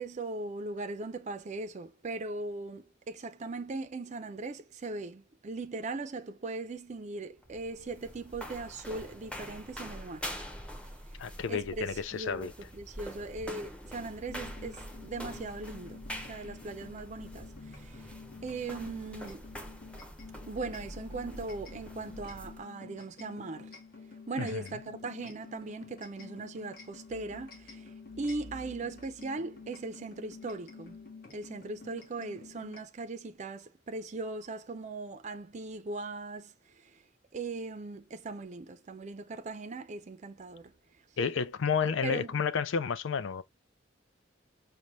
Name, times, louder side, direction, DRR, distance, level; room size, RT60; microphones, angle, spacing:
voice 1, 0.0-10.3 11.5-18.1 18.4-19.4 20.5-23.7 24.3-31.0 31.3-36.5 37.3-40.7 42.0-42.4, right 3 dB, 40° right, 0.5 m, -39 dB
sound 1, 7.3-22.6, equal, 5° left, 0.7 m, -45 dB
voice 2, 11.2-12.5 24.4-24.6 41.2-43.4, left 6 dB, 80° left, 0.4 m, -31 dB
sound 2, 14.3-32.8, left 4 dB, 50° left, 1.0 m, -50 dB
5.3 x 2.2 x 3.0 m
head